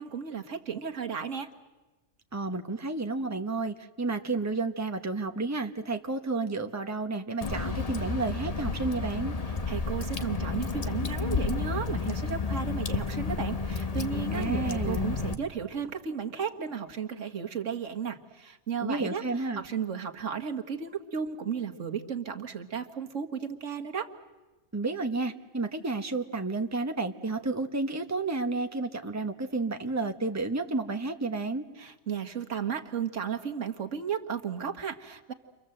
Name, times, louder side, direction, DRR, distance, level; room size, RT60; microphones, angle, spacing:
voice 1, 0.0-1.5 9.7-24.1 31.8-35.3, right 7 dB, 85° right, 5 dB, 1.8 m, -34 dB
voice 2, 2.3-9.3 14.3-15.1 18.8-19.6 24.7-31.6, right 3 dB, 15° right, 6 dB, 1.2 m, -31 dB
Water / Drip, 7.4-15.3, left 4 dB, 30° left, 1.2 m, -31 dB
30.0 x 25.0 x 7.8 m, 1.2 s
omnidirectional pair, 1.2 m